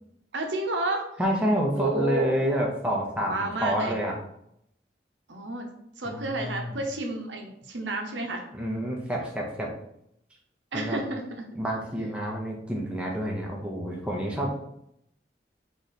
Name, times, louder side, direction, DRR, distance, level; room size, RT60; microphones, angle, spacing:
voice 1, 0.3-1.1 1.7-2.4 3.2-4.0 5.3-5.7 6.0-8.4 10.7-11.2, right 2 dB, 85° right, 2 dB, 0.9 m, -31 dB
voice 2, 1.2-4.1 6.0-6.7 8.5-9.7 10.7-11.0 11.6-14.6, equal, 5° right, -2 dB, 0.7 m, -28 dB
4.0 x 3.1 x 4.1 m, 0.75 s
head